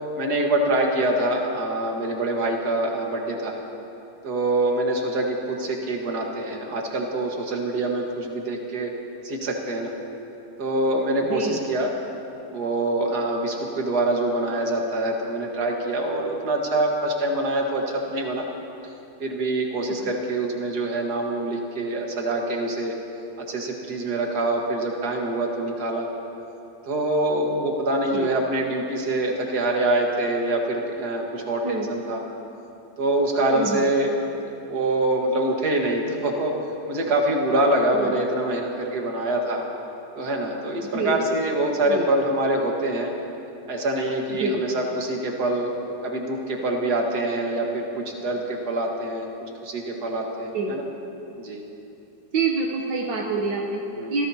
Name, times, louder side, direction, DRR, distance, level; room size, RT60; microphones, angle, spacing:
voice 1, 0.2-3.6 4.2-8.9 9.2-9.9 10.6-11.9 12.5-18.5 19.2-22.9 23.4-26.1 26.9-32.2 33.0-34.1 34.7-36.5 36.9-39.6 40.1-43.1 43.7-45.7 46.0-49.3 49.6-50.8 51.4-51.7 54.0-54.2, right 1 dB, 65° right, 0 dB, 2.2 m, -25 dB
voice 2, 33.5-33.9 37.9-38.2 40.9-41.2 41.9-42.0 44.4-44.6 50.5-50.7 52.3-53.8 54.1-54.3, right 4 dB, 85° right, -1 dB, 1.7 m, -26 dB
25.5 x 17.5 x 2.9 m, 2.9 s
omnidirectional pair, 1.9 m